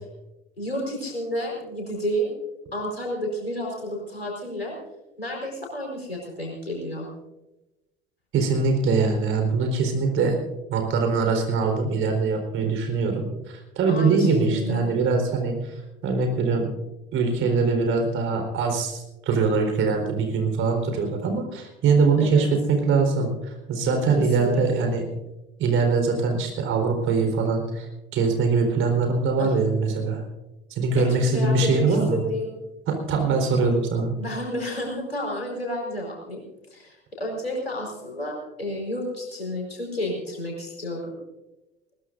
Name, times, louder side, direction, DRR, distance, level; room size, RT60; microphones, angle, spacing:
voice 1, 0.6-2.3 2.7-4.8 5.2-7.1 13.9-14.9 22.2-22.5 24.2-24.9 29.4-29.7 31.0-32.5 34.2-36.4 36.7-41.1, equal, 85° left, -1 dB, 4.6 m, -31 dB
voice 2, 8.3-10.3 10.7-16.7 17.1-25.0 25.6-30.2 30.7-32.2 32.9-34.1, right 4 dB, 45° right, 4 dB, 4.2 m, -23 dB
21.0 x 20.5 x 2.6 m, 0.99 s
figure-of-eight pair, 65°, 29 cm